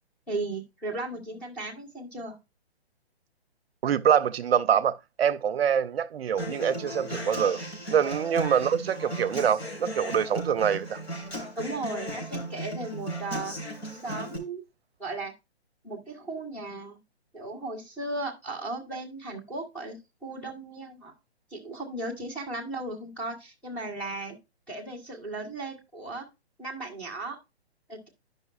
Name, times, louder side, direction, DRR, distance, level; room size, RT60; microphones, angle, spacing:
voice 1, 0.3-2.4 11.6-13.6 13.9-14.6 15.0-15.3 15.8-17.0 17.3-21.1 21.5-24.4 24.7-26.2 26.6-27.4 27.9-28.1, right 2 dB, 5° left, 0.7 m, -36 dB
voice 2, 3.8-7.6 7.9-11.0, right 8 dB, 65° right, 0.5 m, -25 dB
Human voice / Acoustic guitar, 6.4-14.4, right 1 dB, 75° left, 3.6 m, -36 dB
11.5 x 5.3 x 2.4 m
hypercardioid pair, 150°, 33 cm